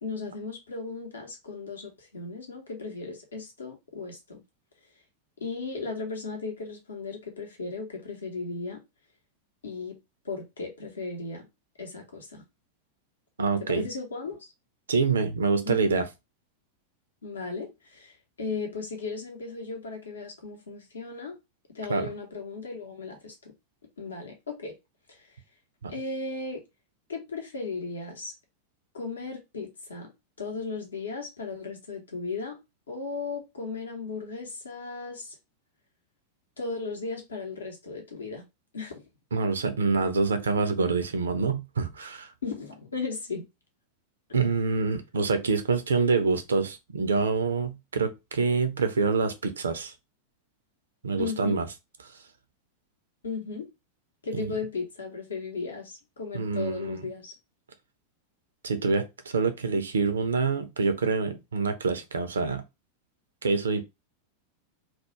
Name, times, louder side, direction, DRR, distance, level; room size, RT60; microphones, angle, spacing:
voice 1, 0.0-4.4 5.4-8.8 9.6-10.0 10.2-11.5 11.8-12.4 13.6-14.5 15.6-15.8 17.2-21.4 21.7-23.5 24.0-24.7 25.1-25.3 25.9-26.6 27.1-28.3 28.9-30.1 30.4-32.6 32.9-35.3 36.6-38.4 38.7-39.0 42.4-43.4 51.2-51.6 53.2-53.7 54.2-57.3, left 4 dB, 70° left, 0.7 m, -36 dB
voice 2, 13.4-13.9 14.9-16.1 21.9-22.1 25.8-25.9 39.3-42.3 44.3-49.9 51.0-51.7 54.3-54.5 56.3-57.0 58.6-62.6 63.4-63.8, right 4 dB, 70° right, 0.4 m, -26 dB
2.3 x 2.0 x 2.7 m
figure-of-eight pair, 90°, 0 cm